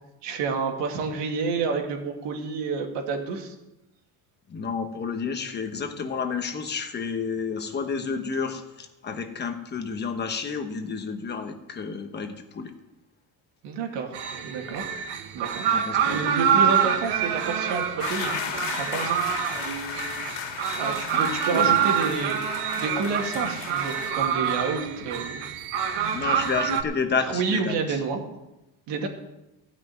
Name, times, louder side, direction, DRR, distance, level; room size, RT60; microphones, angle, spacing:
voice 1, 0.2-3.5 13.6-14.2 14.4-14.8 15.3-15.7 16.1-19.5 20.8-22.4 22.8-25.4 25.9-26.3 27.2-28.2 28.9-29.1, right 4 dB, 90° right, 2 dB, 2.6 m, -29 dB
voice 2, 4.5-12.7 15.7-16.2 21.1-21.8 26.1-28.0, left 5 dB, 25° left, 7 dB, 1.1 m, -30 dB
sound 1, 14.1-26.8, right 8 dB, 70° right, 1.5 m, -26 dB
sound 2, 18.0-24.1, left 7 dB, 85° left, 2.1 m, -35 dB
15.0 x 6.1 x 9.4 m, 0.96 s
cardioid pair, 175°, 41 cm